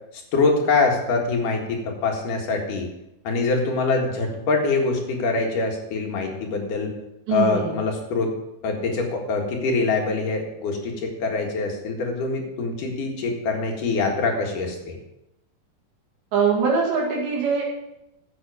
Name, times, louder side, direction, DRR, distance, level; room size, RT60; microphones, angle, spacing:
voice 1, 0.3-2.9 3.2-6.9 7.3-8.3 8.6-15.0, left 3 dB, 55° left, 1 dB, 2.9 m, -24 dB
voice 2, 7.3-7.7 16.3-17.6, right 5 dB, 80° right, -3 dB, 4.3 m, -22 dB
13.5 x 7.8 x 4.9 m, 0.88 s
omnidirectional pair, 5.0 m